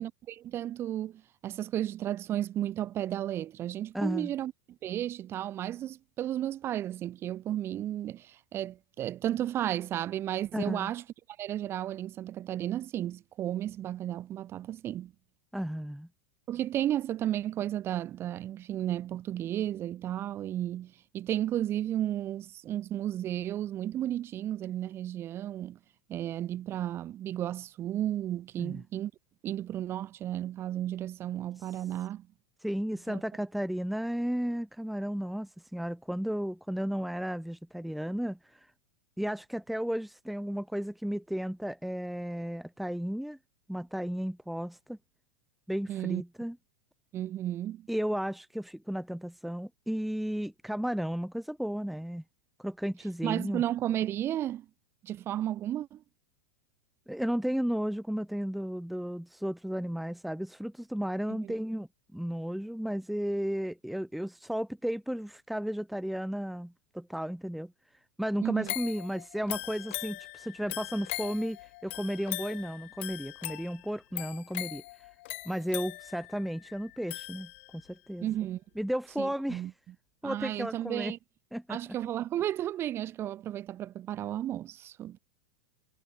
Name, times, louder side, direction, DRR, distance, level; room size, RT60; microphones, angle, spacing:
voice 1, 0.0-4.5 4.8-11.0 11.4-15.1 16.5-25.8 26.1-29.1 29.4-32.3 33.1-33.2 45.9-46.2 47.1-47.9 53.2-54.7 55.0-56.0 61.3-61.6 68.4-68.7 78.2-78.6 79.2-79.7 80.2-81.2 81.7-85.2, right 12 dB, 35° right, 3.8 m, -33 dB
voice 2, 3.9-4.3 10.5-10.9 15.5-16.1 28.6-28.8 32.6-38.7 39.2-43.4 43.7-45.0 45.7-46.5 47.9-52.2 52.6-53.6 57.1-67.7 68.2-71.6 71.8-74.8 75.4-78.3 78.7-79.6 80.2-81.1 81.5-81.8, equal, ahead, 1.7 m, -34 dB
sound 1, 68.7-77.9 78.4-78.5, left 20 dB, 60° left, 4.5 m, -40 dB
hypercardioid pair, 100°, 7 cm